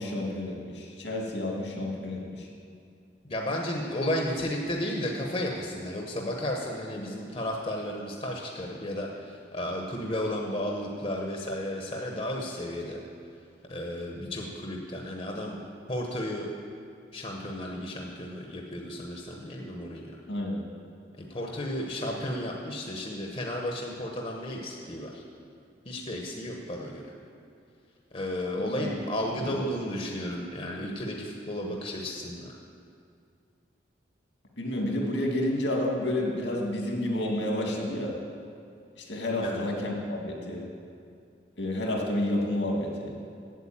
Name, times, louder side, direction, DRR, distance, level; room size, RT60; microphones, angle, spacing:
voice 1, 0.0-2.5 20.3-20.6 28.6-29.0 29.4-29.6 34.6-38.1 39.0-40.6 41.6-43.1, left 1 dB, 80° left, 0 dB, 1.9 m, -30 dB
voice 2, 3.3-13.0 13.7-15.6 15.9-16.5 17.1-20.2 21.3-25.2 25.8-27.1 28.1-32.5 39.4-39.6, left 1 dB, 30° left, 0 dB, 0.9 m, -33 dB
8.4 x 7.9 x 8.7 m, 2.4 s
head